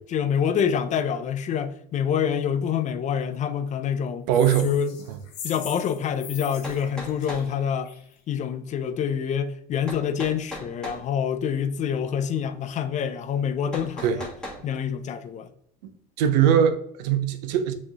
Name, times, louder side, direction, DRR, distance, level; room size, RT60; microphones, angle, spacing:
voice 1, 0.1-4.3 4.6-4.9 5.4-7.9 8.3-14.3 14.6-15.5, left 8 dB, 35° left, 0.4 m, -26 dB
sound 1, 4.3-8.1, left 8 dB, 75° left, 1.0 m, -40 dB
voice 2, 4.3-4.7 14.0-14.2 15.8-15.9 16.2-17.7, right 9 dB, 75° right, 0.6 m, -21 dB
sound 2, 6.6-7.5 9.9-11.0 13.7-14.6, left 1 dB, 5° left, 1.3 m, -37 dB
5.7 x 3.2 x 2.8 m
supercardioid pair, 95°, 21 cm